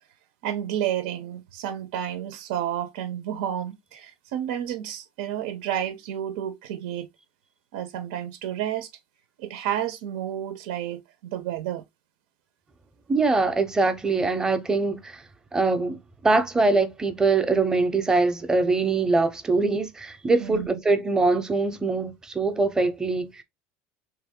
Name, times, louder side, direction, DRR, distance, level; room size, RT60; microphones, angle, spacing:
voice 1, 0.4-7.1 7.7-8.9 9.4-11.8 20.4-20.7, right 10 dB, 85° right, 0.8 m, -31 dB
voice 2, 13.1-15.2 15.5-23.4, right 3 dB, 15° right, 0.7 m, -23 dB
3.5 x 3.1 x 3.6 m
supercardioid pair, 125°, 5 cm